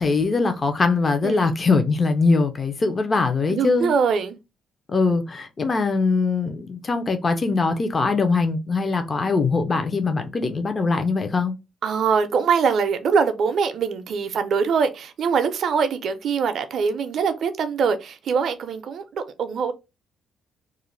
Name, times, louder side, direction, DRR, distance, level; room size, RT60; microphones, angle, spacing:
voice 1, 0.0-3.9 4.9-11.5, left 4 dB, 35° left, 0.5 m, -22 dB
voice 2, 3.5-4.4 11.8-19.7, right 6 dB, 65° right, 0.4 m, -23 dB
2.4 x 2.1 x 3.1 m
cardioid pair, 90°, 0 cm